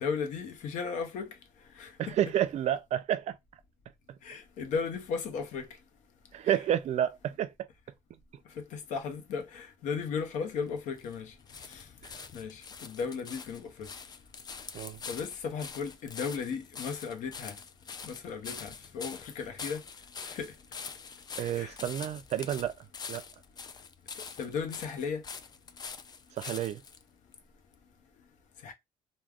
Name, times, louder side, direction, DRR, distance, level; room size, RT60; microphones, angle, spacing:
voice 1, 0.0-1.3 1.8-2.2 4.2-5.7 6.5-6.6 8.6-11.3 11.7-11.8 12.3-13.9 15.1-17.6 18.0-19.8 20.3-20.5 21.6-21.7 24.4-25.2 28.6-28.7, left 5 dB, 75° left, 0.7 m, -35 dB
voice 2, 2.0-3.4 6.3-7.5 12.0-12.3 14.7-15.0 21.4-22.8 23.1-23.2 26.4-26.8, right 11 dB, 60° right, 0.5 m, -30 dB
sound 1, 10.5-27.0 27.7-27.8, left 5 dB, 30° left, 0.4 m, -45 dB
3.4 x 2.2 x 2.3 m
cardioid pair, 90°, 13 cm